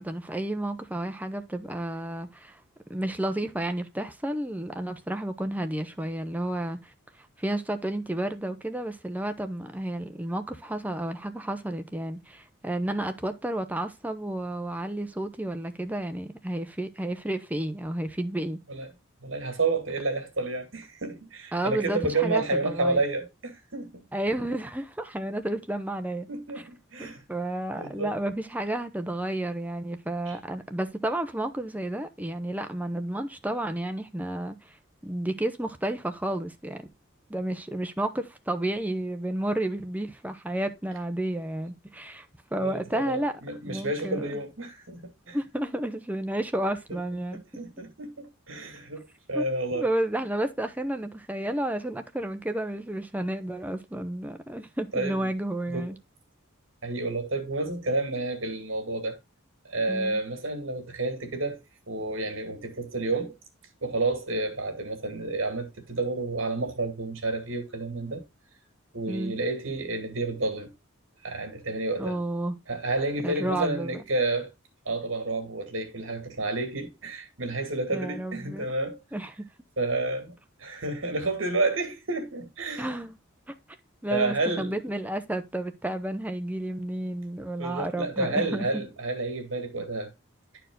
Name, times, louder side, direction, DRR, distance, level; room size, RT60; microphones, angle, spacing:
voice 1, 0.0-2.6 2.9-6.9 7.4-18.6 21.5-23.0 24.1-26.3 27.0-34.8 35.0-36.8 37.3-42.3 42.5-43.3 43.6-44.3 45.3-47.4 49.3-49.5 49.7-56.0 59.9-60.2 69.1-69.4 72.0-72.6 73.2-74.0 77.9-78.7 79.1-79.4 82.8-83.2 83.5-83.6 84.0-88.8, right 1 dB, 10° right, 0.7 m, -31 dB
voice 2, 19.2-24.0 26.3-27.2 27.7-28.2 30.3-30.4 42.6-45.4 47.1-49.9 54.9-55.3 55.7-55.9 56.8-59.2 59.6-61.6 61.9-63.3 63.8-68.2 68.9-70.7 71.2-72.2 72.7-74.5 74.9-79.0 79.8-82.9 84.1-84.7 87.6-90.1, right 2 dB, 70° right, 2.3 m, -30 dB
10.5 x 4.6 x 3.8 m
head